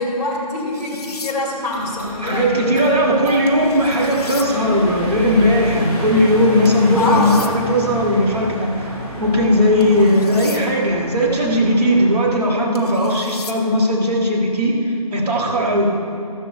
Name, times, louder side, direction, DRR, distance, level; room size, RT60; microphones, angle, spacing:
voice 1, 0.0-2.5 6.9-7.5 9.8-10.1, left 2 dB, 20° left, -7 dB, 2.6 m, -23 dB
sound 1, 0.7-1.4 3.5-4.5 6.7-7.5 9.8-10.6 12.8-13.6, left 4 dB, 75° left, 1.2 m, -36 dB
sound 2, 1.7-12.3, left 1 dB, 10° right, 2.4 m, -30 dB
voice 2, 2.2-8.9 9.2-15.9, equal, 80° right, -3 dB, 2.2 m, -17 dB
14.5 x 14.0 x 2.2 m, 2.8 s
figure-of-eight pair, 165°, 20 cm